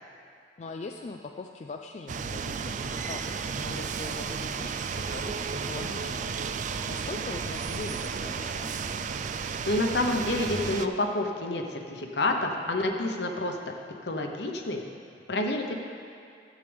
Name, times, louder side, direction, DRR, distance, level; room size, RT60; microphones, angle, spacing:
voice 1, 0.6-6.4 6.9-8.9, left 3 dB, 40° left, 3 dB, 0.3 m, -41 dB
sound 1, 2.1-10.9, right 5 dB, 45° right, 0.3 m, -33 dB
voice 2, 9.6-13.6 14.0-14.8 15.3-15.8, left 2 dB, 65° left, 3 dB, 1.0 m, -28 dB
13.5 x 8.4 x 3.5 m, 2.4 s
head